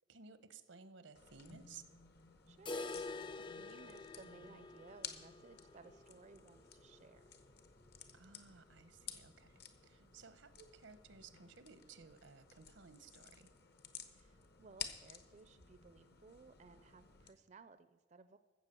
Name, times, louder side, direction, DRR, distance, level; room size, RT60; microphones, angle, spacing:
voice 1, 0.1-1.8 8.1-13.5, right 5 dB, 90° right, 13 dB, 0.9 m, -58 dB
sound 1, 1.1-17.3, left 7 dB, 60° left, 1.0 m, -54 dB
voice 2, 2.5-7.4 10.0-10.2 14.1-18.4, right 4 dB, 40° right, 12 dB, 0.4 m, -60 dB
sound 2, 2.7-8.5 8.8-8.9 9.2-9.3 9.8-9.9 10.8-10.9, left 3 dB, 25° left, 0.4 m, -48 dB
14.0 x 7.5 x 6.8 m, 1.4 s
head